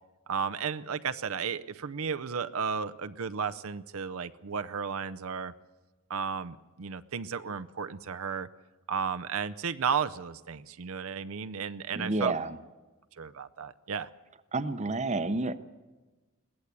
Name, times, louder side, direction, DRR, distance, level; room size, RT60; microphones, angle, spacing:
voice 1, 0.3-5.5 6.1-8.5 8.9-12.3 13.2-14.1, right 6 dB, 75° right, 10 dB, 0.6 m, -33 dB
voice 2, 11.9-12.6 14.5-15.6, right 2 dB, 30° right, 12 dB, 0.8 m, -29 dB
21.5 x 16.0 x 8.3 m, 1.2 s
head